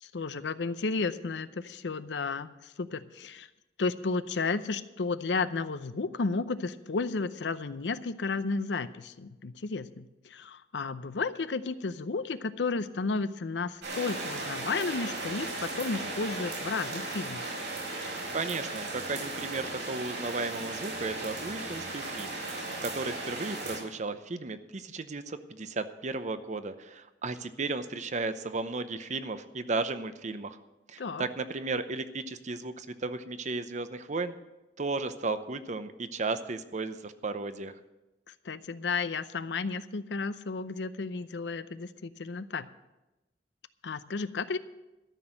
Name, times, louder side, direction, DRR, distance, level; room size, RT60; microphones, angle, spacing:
voice 1, 0.0-3.5 3.8-17.5 31.0-31.2 38.4-42.7 43.8-44.6, left 4 dB, 80° left, 14 dB, 0.6 m, -33 dB
sound 1, 13.8-23.8, right 2 dB, 75° right, 5.2 m, -36 dB
voice 2, 18.3-22.4 22.8-30.6 30.9-34.3 34.8-37.8, right 3 dB, 40° right, 11 dB, 0.7 m, -34 dB
13.0 x 6.2 x 8.8 m, 1.0 s
head